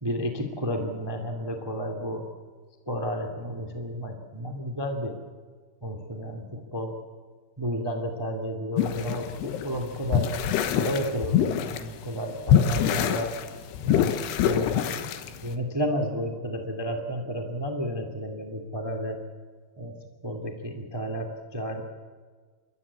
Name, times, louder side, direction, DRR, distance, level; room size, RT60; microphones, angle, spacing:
voice 1, 0.0-2.2 2.8-5.2 5.8-6.9 7.6-10.3 10.7-13.3 13.8-14.1 14.4-15.1 15.4-19.2 19.8-20.0 20.2-21.8, equal, 35° right, 3 dB, 0.4 m, -32 dB
sound 1, 8.8-11.9 12.2-15.6, left 9 dB, 75° left, 3.1 m, -25 dB
29.0 x 13.5 x 8.8 m, 1.5 s
omnidirectional pair, 5.1 m